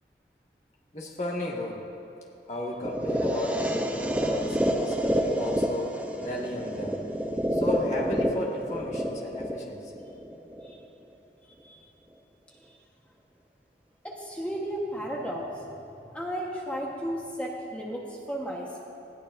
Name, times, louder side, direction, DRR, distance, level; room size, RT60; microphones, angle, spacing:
voice 1, 0.9-1.8 2.5-7.0 7.5-9.9, left 1 dB, 40° left, -3 dB, 1.9 m, -34 dB
sound 1, 2.8-10.8, equal, 10° right, 0.7 m, -28 dB
voice 2, 14.0-15.5 16.1-18.8, equal, 5° left, -3 dB, 1.3 m, -34 dB
20.5 x 15.5 x 2.7 m, 2.8 s
head